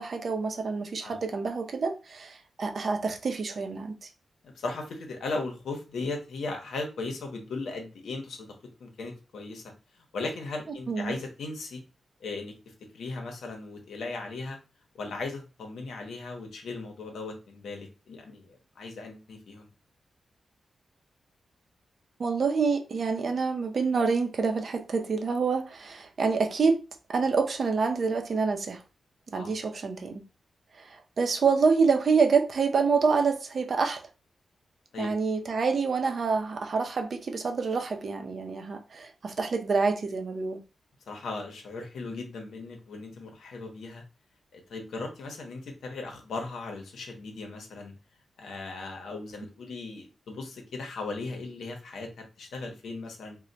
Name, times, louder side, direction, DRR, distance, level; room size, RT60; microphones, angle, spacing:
voice 1, 0.0-4.1 10.9-11.2 22.2-26.8 27.1-28.8 29.3-30.2 30.7-34.0 35.0-40.6, right 5 dB, 60° right, 0.5 m, -27 dB
voice 2, 4.4-11.8 12.2-12.5 12.9-14.6 14.9-19.7 29.3-29.5 34.9-35.1 41.1-44.0 44.5-47.9 48.4-53.4, left 3 dB, 90° left, 0.7 m, -37 dB
2.1 x 2.1 x 3.8 m
cardioid pair, 80°, 0 cm